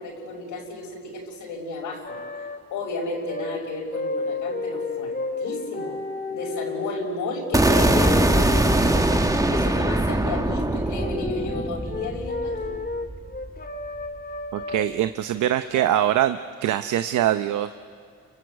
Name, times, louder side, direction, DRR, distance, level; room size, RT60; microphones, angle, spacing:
voice 1, 0.0-2.2 2.7-6.0 6.3-9.2 9.5-12.7, left 3 dB, 80° left, -1 dB, 5.9 m, -33 dB
sound 1, 2.1-2.6 3.3-3.6 3.9-7.1 7.7-9.7 10.3-10.7 10.9-14.9 15.7-16.1, left 3 dB, 30° left, 2.0 m, -32 dB
sound 2, 7.5-13.6, right 1 dB, 10° right, 1.5 m, -22 dB
voice 2, 14.5-17.8, right 12 dB, 75° right, 10 dB, 0.8 m, -23 dB
29.0 x 24.0 x 8.2 m, 2.2 s
cardioid pair, 90°, 30 cm